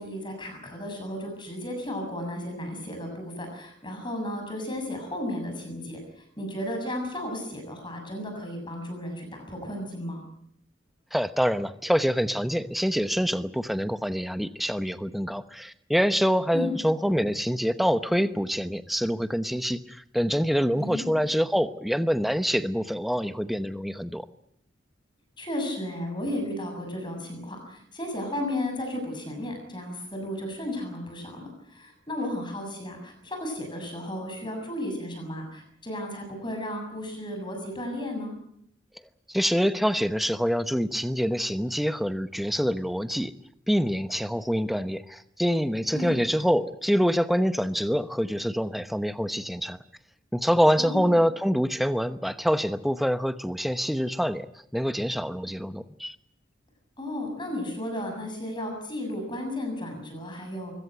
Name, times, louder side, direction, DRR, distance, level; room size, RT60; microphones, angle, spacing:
voice 1, 0.0-10.2 16.5-16.7 20.8-21.1 25.4-38.3 45.9-46.2 50.8-51.2 57.0-60.7, left 1 dB, 25° left, 4 dB, 7.2 m, -34 dB
voice 2, 11.1-24.3 39.3-43.3 43.7-49.8 50.3-54.5 54.7-56.1, equal, ahead, 11 dB, 0.9 m, -26 dB
24.0 x 16.5 x 9.1 m, 0.70 s
head